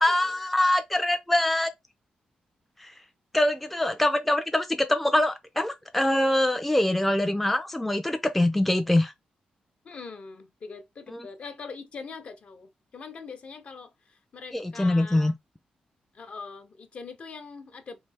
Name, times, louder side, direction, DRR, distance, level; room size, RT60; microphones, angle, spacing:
voice 1, 0.0-1.7 2.8-2.9 3.3-9.1 11.1-11.3 14.5-15.3, left 1 dB, 5° left, 0.3 m, -24 dB
voice 2, 9.8-15.3 16.1-18.0, left 4 dB, 50° left, 0.6 m, -42 dB
3.2 x 2.7 x 3.3 m
wide cardioid pair, 135°, 3 cm